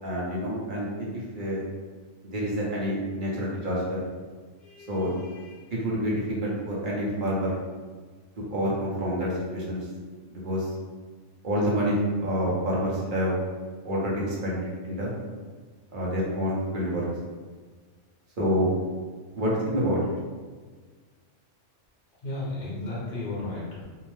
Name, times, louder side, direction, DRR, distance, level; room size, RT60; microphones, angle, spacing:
voice 1, 0.0-1.6 2.2-4.0 4.9-5.1 5.7-7.6 8.4-9.9 10.3-10.7 11.4-13.4 13.8-15.1 15.9-17.1 18.4-18.7 19.4-20.0, equal, 50° right, -5 dB, 0.8 m, -28 dB
voice 2, 4.6-5.6 22.2-23.8, left 2 dB, 50° left, -7 dB, 0.9 m, -35 dB
2.7 x 2.0 x 3.0 m, 1.5 s
omnidirectional pair, 1.3 m